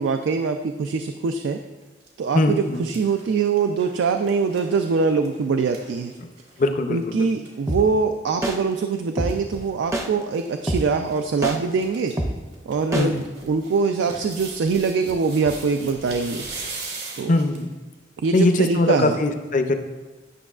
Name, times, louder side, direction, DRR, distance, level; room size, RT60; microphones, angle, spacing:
voice 1, 0.0-1.6 2.2-6.1 6.9-12.1 12.7-16.5 17.1-17.3 18.2-19.2, right 5 dB, 80° right, 6 dB, 0.3 m, -23 dB
sound 1, 1.8-2.1 2.5-6.7 7.0-7.1 7.3-7.5 8.8-9.7 10.3-10.8 11.1-11.2 11.5-12.1 12.5-17.7 18.2-18.3, right 3 dB, 65° right, 1.8 m, -39 dB
voice 2, 2.3-2.8 6.2-6.3 6.6-7.2 12.9-13.2 17.3-17.7 18.3-19.7, left 2 dB, 45° left, 7 dB, 0.5 m, -21 dB
sound 2, 7.7-7.8 8.4-8.6 9.2-9.3 9.9-10.1 10.7-10.8 11.4-11.6 12.2-12.3 12.9-13.1, right 1 dB, 15° right, 0.5 m, -24 dB
10.0 x 6.2 x 2.4 m, 1.2 s
head